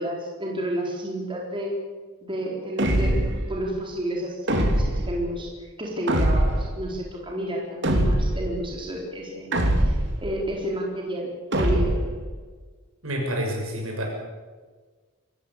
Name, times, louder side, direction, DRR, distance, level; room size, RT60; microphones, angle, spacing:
voice 1, 0.0-1.7 2.2-3.2 3.5-9.5 9.8-12.0, right 1 dB, 25° right, -1 dB, 4.1 m, -31 dB
Magic Impact, 2.8-3.5 4.5-5.1 6.1-6.7 7.8-8.5 9.5-10.2 11.5-12.2, right 1 dB, 55° right, 3.2 m, -22 dB
voice 2, 13.0-14.1, equal, 75° right, 1 dB, 6.6 m, -28 dB
25.0 x 15.0 x 8.3 m, 1.4 s
head